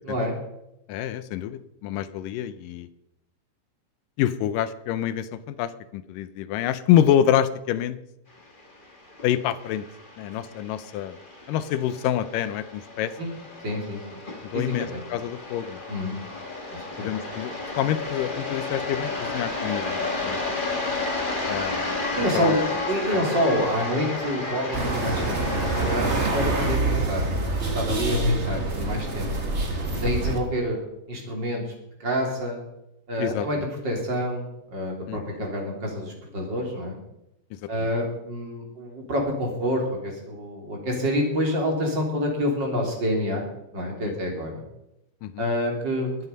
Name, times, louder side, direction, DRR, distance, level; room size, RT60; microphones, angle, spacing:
voice 1, 0.1-0.4 13.2-13.3 13.6-14.2 14.5-15.0 15.9-16.2 16.7-17.1 22.2-27.3 27.6-29.3 30.0-30.8 31.1-31.6 32.0-32.7 33.1-37.0 37.7-43.5 43.7-44.6 45.4-46.1, equal, 30° right, 0 dB, 3.4 m, -28 dB
voice 2, 0.9-2.9 4.2-8.0 9.2-9.9 10.2-11.2 11.5-13.1 14.5-15.8 17.0-20.4 21.5-22.0 22.4-22.6 23.1-23.2 29.9-30.3 33.2-33.5 35.1-35.2 37.8-37.9 44.1-44.2 45.2-45.4, left 10 dB, 75° left, 13 dB, 2.1 m, -26 dB
sound 1, 8.5-26.8, left 3 dB, 30° left, 0.9 m, -32 dB
sound 2, 24.7-30.4, right 2 dB, 70° right, 0.6 m, -26 dB
22.0 x 7.8 x 5.4 m, 0.85 s
omnidirectional pair, 4.4 m